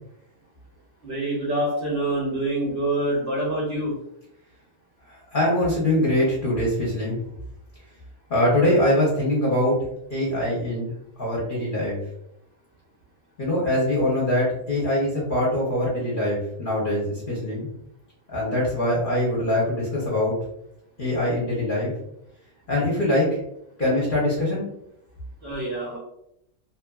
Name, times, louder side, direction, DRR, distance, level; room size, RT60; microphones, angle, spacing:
voice 1, 1.0-3.9 25.4-26.0, right 1 dB, 55° right, -5 dB, 0.6 m, -26 dB
voice 2, 5.1-7.2 8.3-9.8 10.1-10.9 11.2-12.0 13.4-17.7 18.3-20.4 21.0-21.9 22.7-23.4 23.8-24.7, left 1 dB, 45° left, -5 dB, 0.8 m, -23 dB
2.8 x 2.5 x 2.2 m, 0.78 s
omnidirectional pair, 1.6 m